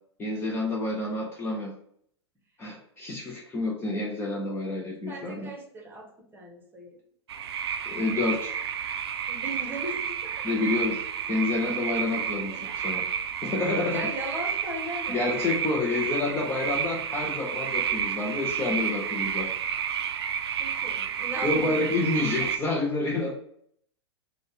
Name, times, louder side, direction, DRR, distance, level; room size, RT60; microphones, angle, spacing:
voice 1, 0.2-1.7 2.6-5.5 7.9-8.6 10.4-11.0 11.3-13.0 13.4-14.0 15.1-19.5 21.4-23.4, left 2 dB, 15° left, -1 dB, 0.5 m, -28 dB
voice 2, 5.1-7.0 9.3-10.5 12.5-13.1 13.9-15.4 20.6-21.7, right 1 dB, 15° right, 0 dB, 1.0 m, -38 dB
sound 1, 7.3-22.6, right 8 dB, 60° right, 0.4 m, -31 dB
3.7 x 2.2 x 3.5 m, 0.66 s
figure-of-eight pair, 100°, 15 cm